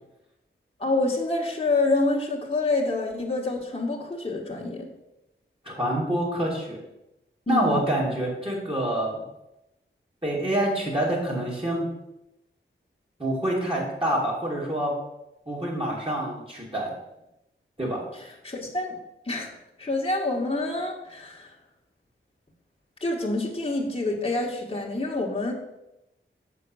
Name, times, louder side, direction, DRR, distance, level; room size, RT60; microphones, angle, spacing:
voice 1, 0.8-4.9 7.5-7.8 18.1-19.0 19.2-19.5 19.8-21.5 23.0-25.5, left 2 dB, 25° left, -3 dB, 1.5 m, -27 dB
voice 2, 5.7-6.8 7.5-9.2 10.2-11.9 13.2-14.9 15.5-16.9 17.8-18.0, right 1 dB, 25° right, -5 dB, 2.6 m, -26 dB
7.4 x 5.3 x 6.3 m, 0.90 s
wide cardioid pair, 75°, 21 cm